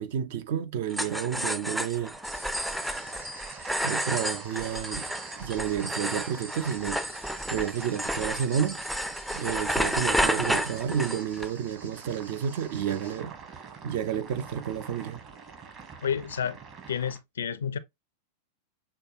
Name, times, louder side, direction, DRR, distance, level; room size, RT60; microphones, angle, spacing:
voice 1, 0.0-2.2 3.8-5.1 5.4-7.0 7.5-8.8 9.3-13.3 13.8-15.2, right 8 dB, 50° right, 0.6 m, -30 dB
sound 1, 0.9-11.5, equal, 5° right, 0.5 m, -31 dB
sound 2, 2.1-17.2, right 5 dB, 30° right, 1.3 m, -47 dB
sound 3, 2.2-13.2, right 2 dB, 70° right, 1.2 m, -51 dB
voice 2, 16.0-16.6 16.9-17.8, left 8 dB, 65° left, 0.5 m, -30 dB
6.4 x 2.3 x 3.0 m
figure-of-eight pair, 90°, 0 cm